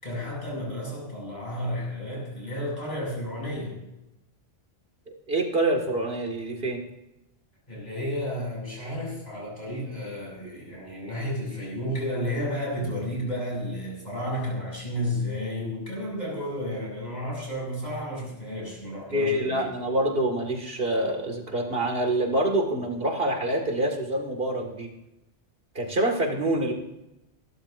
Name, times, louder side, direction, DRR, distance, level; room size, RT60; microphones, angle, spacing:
voice 1, 0.0-3.8 7.7-19.7, equal, 40° left, -3 dB, 6.6 m, -32 dB
voice 2, 5.3-6.8 19.1-24.9 25.7-26.7, right 1 dB, 65° right, 2 dB, 2.2 m, -26 dB
27.0 x 12.0 x 2.6 m, 0.91 s
omnidirectional pair, 1.1 m